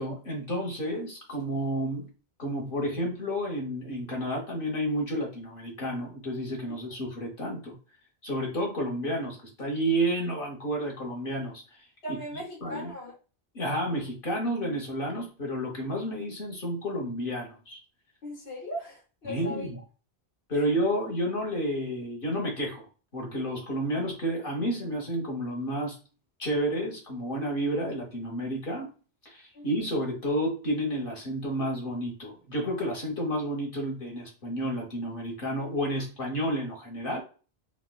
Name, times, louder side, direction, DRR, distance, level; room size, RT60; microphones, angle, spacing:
voice 1, 0.0-2.1 2.4-7.7 8.2-11.6 12.1-12.2 12.6-12.9 13.5-17.8 19.2-19.8 20.5-22.9 23.1-26.0 26.4-28.9 29.2-37.2, equal, 55° left, 1.3 m, -31 dB
voice 2, 12.0-13.1 18.2-19.7 20.5-20.6 29.5-29.7, equal, 85° left, 1.6 m, -38 dB
4.9 x 2.2 x 2.3 m
omnidirectional pair, 1.1 m